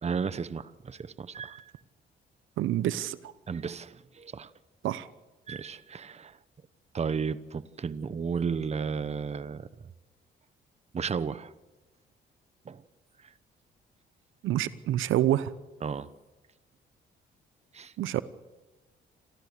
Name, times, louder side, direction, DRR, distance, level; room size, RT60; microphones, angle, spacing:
voice 1, 0.0-1.7 3.5-4.5 5.5-6.4 6.9-9.7 10.9-11.5 12.7-12.8 15.8-16.1 17.7-17.9, right 6 dB, 35° right, 16 dB, 0.9 m, -33 dB
voice 2, 2.6-3.2 4.8-5.1 14.4-15.5 18.0-18.2, right 13 dB, 80° right, 16 dB, 0.8 m, -27 dB
27.5 x 14.0 x 6.7 m, 1.2 s
cardioid pair, 90°, 20 cm